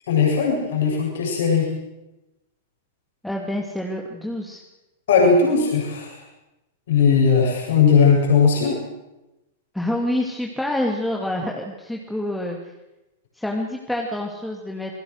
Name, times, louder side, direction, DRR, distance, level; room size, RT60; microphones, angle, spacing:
voice 1, 0.1-1.7 5.1-6.2 6.9-8.8, left 5 dB, 60° left, -1 dB, 7.9 m, -18 dB
voice 2, 3.2-4.6 9.7-12.6 13.3-14.9, left 1 dB, 5° left, 0 dB, 2.7 m, -27 dB
27.5 x 20.5 x 6.6 m, 0.97 s
figure-of-eight pair, 100°, 0 cm